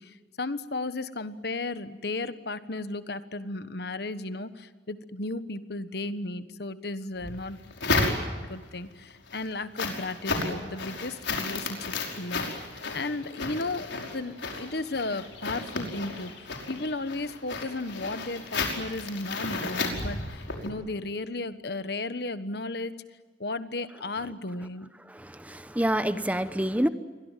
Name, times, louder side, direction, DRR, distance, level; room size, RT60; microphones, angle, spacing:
voice 1, 0.0-8.1 8.4-23.0 23.4-24.9, left 2 dB, 60° left, 12 dB, 1.3 m, -35 dB
sound 1, 7.2-8.6 9.1-20.7, left 3 dB, 80° left, 5.2 m, -33 dB
voice 2, 25.1-26.9, equal, 10° right, 11 dB, 1.0 m, -27 dB
29.5 x 23.5 x 7.5 m, 1.4 s
head